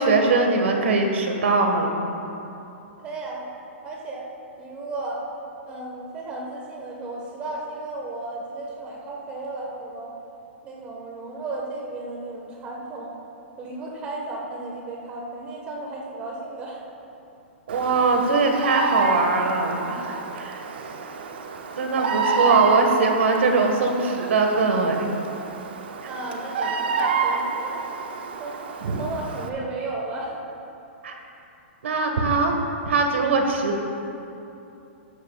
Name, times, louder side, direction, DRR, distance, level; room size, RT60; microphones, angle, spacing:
voice 1, 0.0-1.9 17.7-20.6 21.8-25.1 28.8-29.0 31.0-31.1 31.8-32.5 32.9-33.8, right 3 dB, 70° right, 3 dB, 1.6 m, -21 dB
voice 2, 3.0-3.5 3.8-4.3 4.6-5.2 5.7-10.1 10.6-13.1 13.6-16.8 20.6-20.9 22.4-22.7 26.0-27.9 28.4-30.4, right 2 dB, 15° right, -2 dB, 1.4 m, -34 dB
Bird vocalization bird call bird song, 17.7-29.5, right 5 dB, 50° right, 0.8 m, -28 dB
13.5 x 12.0 x 2.4 m, 2.8 s
hypercardioid pair, 175°, 7 cm